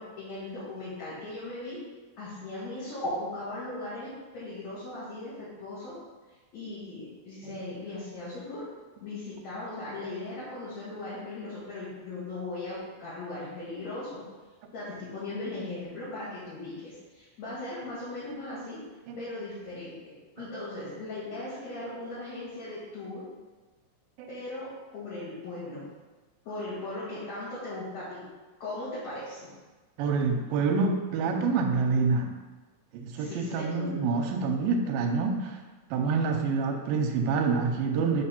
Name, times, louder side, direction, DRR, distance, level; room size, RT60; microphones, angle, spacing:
voice 1, 0.0-1.8 2.2-6.0 6.5-8.7 9.0-14.2 14.7-18.8 19.2-23.2 24.3-25.8 26.4-28.2 28.6-29.5 33.1-34.3, left 2 dB, 55° left, -11 dB, 2.8 m, -38 dB
voice 2, 30.0-32.3 32.9-35.6 35.9-38.2, right 4 dB, 90° right, 3 dB, 2.4 m, -27 dB
6.4 x 3.6 x 5.8 m, 1.3 s
omnidirectional pair, 4.2 m